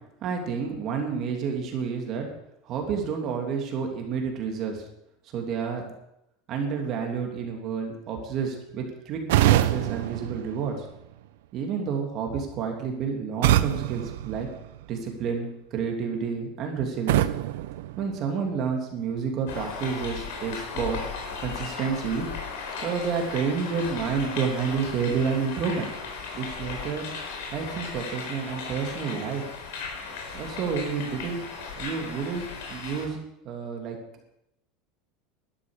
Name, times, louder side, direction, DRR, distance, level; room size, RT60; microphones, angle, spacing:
voice 1, 0.2-2.2 2.7-4.8 5.3-5.9 6.5-10.8 11.5-14.5 14.9-17.3 18.0-21.0 21.4-22.3 22.8-25.9 26.3-27.0 27.5-29.4 30.3-31.4 31.7-33.2 33.4-34.0, right 6 dB, 35° right, 2 dB, 2.8 m, -29 dB
sound 1, 9.3-11.3 13.4-15.1 17.1-18.7, right 14 dB, 80° right, 0.8 m, -25 dB
sound 2, 19.5-33.1, left 5 dB, 75° left, 4.3 m, -36 dB
12.0 x 12.0 x 6.5 m, 0.80 s
supercardioid pair, 165°, 0 cm